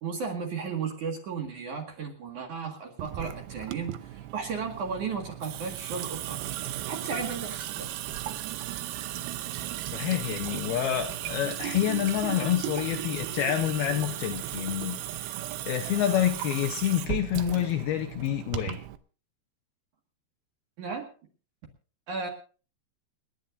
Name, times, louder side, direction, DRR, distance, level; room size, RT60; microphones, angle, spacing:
voice 1, 0.0-6.4 6.9-7.9 20.8-21.1 22.1-22.3, right 5 dB, 50° right, 2 dB, 2.7 m, -34 dB
Water tap faucet / Sink (filling or washing) / Drip, 3.0-19.0, right 13 dB, 90° right, 2.2 m, -36 dB
voice 2, 9.9-18.8, left 11 dB, 75° left, 5 dB, 2.4 m, -28 dB
28.5 x 11.0 x 2.6 m, 0.37 s
omnidirectional pair, 5.5 m